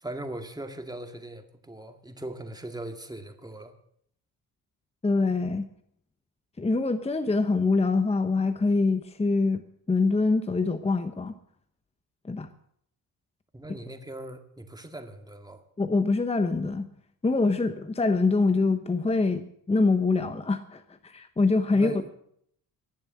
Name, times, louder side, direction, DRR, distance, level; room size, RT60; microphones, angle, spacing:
voice 1, 0.0-3.7 13.5-15.6 21.7-22.1, right 1 dB, 10° right, 6 dB, 2.1 m, -40 dB
voice 2, 5.0-5.7 6.6-9.6 9.9-11.3 12.2-12.5 15.8-16.9 17.2-21.9, left 3 dB, 15° left, 10 dB, 1.0 m, -24 dB
19.0 x 7.1 x 7.7 m, 0.69 s
cardioid pair, 75°, 37 cm